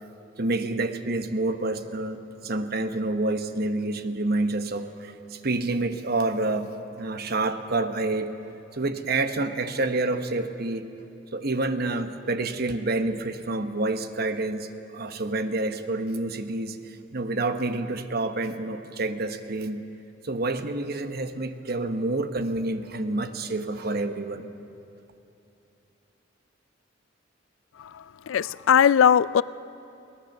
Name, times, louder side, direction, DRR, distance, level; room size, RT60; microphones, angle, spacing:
voice 1, 0.4-6.7 7.0-8.3 8.7-10.9 11.3-19.9 20.2-24.5, right 2 dB, 50° right, 9 dB, 1.0 m, -28 dB
voice 2, 27.8-29.4, left 8 dB, 85° left, 19 dB, 0.4 m, -20 dB
22.5 x 18.0 x 6.7 m, 2.8 s
head